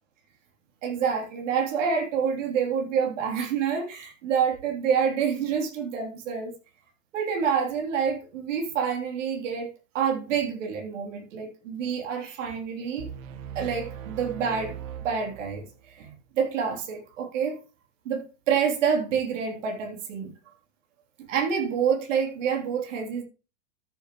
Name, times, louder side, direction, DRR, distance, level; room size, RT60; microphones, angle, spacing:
voice 1, 0.8-6.5 7.1-13.1 13.5-14.8 15.0-15.7 15.9-17.6 18.0-20.3 21.3-23.2, right 7 dB, 70° right, 3.4 m, -27 dB
sound 1, 13.0-15.9, right 8 dB, 50° right, 1.5 m, -40 dB
13.5 x 6.9 x 3.1 m
supercardioid pair, 140°, 39 cm